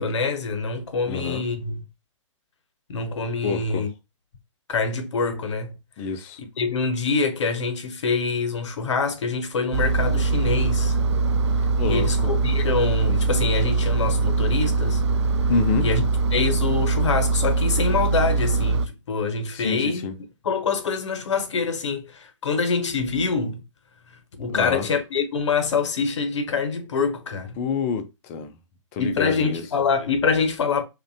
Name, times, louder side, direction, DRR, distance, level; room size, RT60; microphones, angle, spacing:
voice 1, 0.0-1.8 2.9-3.9 4.7-5.7 6.4-11.0 11.8-15.0 15.8-16.0 16.3-20.1 20.4-23.6 24.4-27.6 29.0-30.8, left 4 dB, 65° left, 0.7 m, -25 dB
voice 2, 1.1-1.4 3.4-3.8 6.0-6.4 11.8-12.3 15.5-15.9 19.5-20.1 24.5-24.9 27.6-28.6 28.9-29.6, left 5 dB, 25° left, 0.4 m, -27 dB
Engine, 9.7-18.9, right 3 dB, 60° right, 0.4 m, -22 dB
2.5 x 2.2 x 2.6 m
figure-of-eight pair, 125°, 17 cm